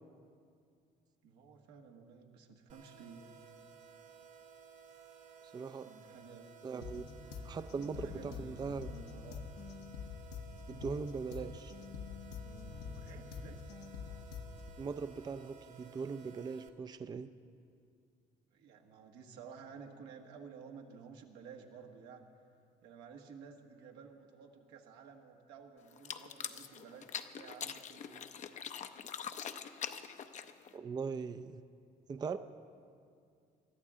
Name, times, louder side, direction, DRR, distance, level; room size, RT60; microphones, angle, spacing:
voice 1, 1.2-3.4 5.8-6.6 8.0-9.4 12.8-13.6 18.5-22.2 22.8-28.3, right 6 dB, 90° right, 2 dB, 1.5 m, -53 dB
sound 1, 2.7-16.7, right 6 dB, 45° right, 1.0 m, -57 dB
voice 2, 5.5-5.9 6.6-7.0 7.4-8.9 10.7-11.7 14.8-17.3 30.7-31.6 32.1-32.4, right 5 dB, 25° right, 11 dB, 0.4 m, -40 dB
sound 2, 6.8-14.8, left 5 dB, 85° left, 1.0 m, -46 dB
sound 3, 25.9-30.8, left 8 dB, 45° left, 0.6 m, -43 dB
21.0 x 13.5 x 3.7 m, 2.3 s
cardioid pair, 110°, 17 cm